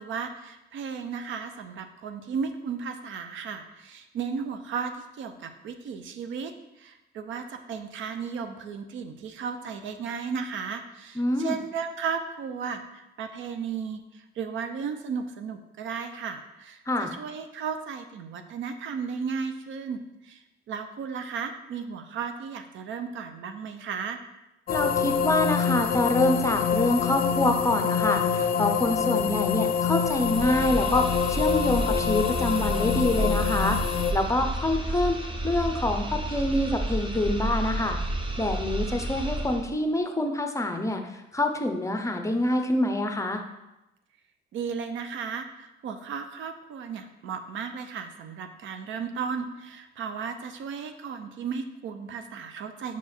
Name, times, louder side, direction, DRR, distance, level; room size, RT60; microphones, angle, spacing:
voice 1, 0.0-24.2 44.5-53.0, right 6 dB, 75° right, 8 dB, 0.6 m, -35 dB
voice 2, 11.2-11.6 16.9-17.1 24.7-33.8 34.1-35.2 35.4-38.0 38.4-41.0 41.3-43.4, left 1 dB, 15° left, 5 dB, 0.7 m, -26 dB
sound 1, 24.7-34.1, left 7 dB, 50° left, 0.5 m, -26 dB
sound 2, 30.1-39.7, right 1 dB, 25° right, 0.8 m, -31 dB
5.8 x 4.6 x 4.4 m, 0.93 s
cardioid pair, 90°, 20 cm